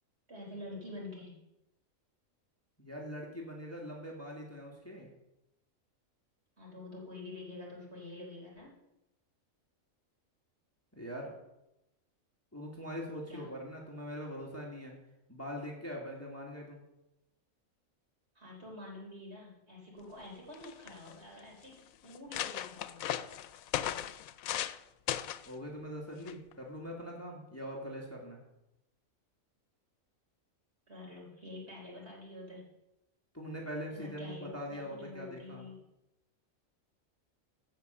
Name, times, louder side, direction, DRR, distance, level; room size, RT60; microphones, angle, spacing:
voice 1, 0.3-1.4 6.6-8.7 13.3-13.5 18.4-23.3 30.9-32.7 33.9-35.8, left 2 dB, 50° right, -2 dB, 4.2 m, -47 dB
voice 2, 2.8-5.1 10.9-11.3 12.5-14.9 15.3-16.8 25.5-28.4 33.3-35.6, equal, 10° left, -2 dB, 2.2 m, -42 dB
sound 1, 20.2-20.3 20.5-21.1 21.7-21.8 22.1-24.8 25.1-25.5 26.3-26.5, left 11 dB, 85° left, 1.0 m, -36 dB
16.0 x 5.9 x 6.9 m, 0.91 s
omnidirectional pair, 1.4 m